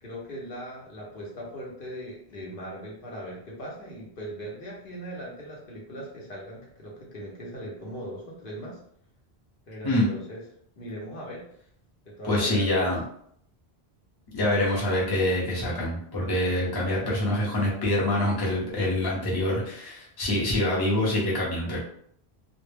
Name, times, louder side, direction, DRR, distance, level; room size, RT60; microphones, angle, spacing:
voice 1, 0.0-8.8 9.7-10.4 10.8-11.4 12.1-12.9, equal, 60° left, -4 dB, 0.8 m, -39 dB
voice 2, 12.2-13.0 14.3-21.8, left 1 dB, 25° left, -5 dB, 0.6 m, -25 dB
2.1 x 2.0 x 3.2 m, 0.67 s
omnidirectional pair, 1.1 m